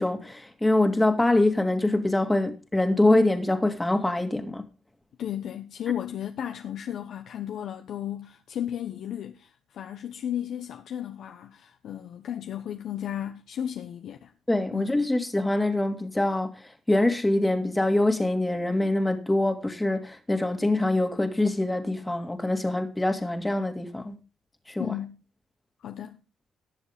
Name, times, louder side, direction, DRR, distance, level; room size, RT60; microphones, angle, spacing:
voice 1, 0.0-4.6 14.5-16.6 16.9-24.2 24.7-24.9, left 1 dB, 10° left, 2.2 m, -24 dB
voice 2, 5.2-14.3 14.7-14.9 24.8-25.2 25.8-26.2, left 10 dB, 70° left, 1.0 m, -34 dB
19.0 x 7.2 x 3.5 m
cardioid pair, 90°, 0 cm